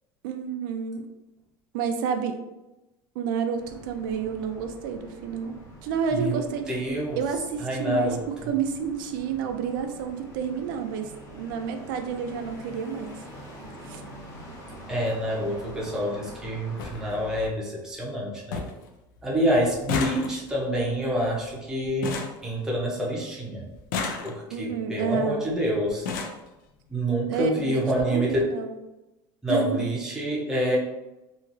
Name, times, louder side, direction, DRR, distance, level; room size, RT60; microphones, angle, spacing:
voice 1, 0.2-1.0 1.7-2.4 3.2-5.6 5.8-6.7 7.2-13.2 13.8-14.0 24.5-25.4 27.3-28.8 29.5-29.9, right 6 dB, 75° right, 5 dB, 0.4 m, -30 dB
sound 1, 3.6-17.5, right 1 dB, 25° left, 0.7 m, -45 dB
voice 2, 6.1-7.2 7.6-8.5 14.9-18.6 19.2-23.6 24.2-26.1 26.9-28.5 29.4-30.8, equal, 5° right, -4 dB, 0.6 m, -27 dB
sound 2, 14.7-14.9 16.1-16.2 16.4-16.5 16.8-17.0 17.4-17.9 18.2-18.3 18.5-18.9 19.2-23.1 23.7-24.7 25.5-25.6 25.9-26.5 27.4-27.5 27.8-28.0 28.3-28.4, left 5 dB, 85° left, 0.5 m, -33 dB
2.9 x 2.4 x 2.5 m, 0.98 s
cardioid pair, 160°, 11 cm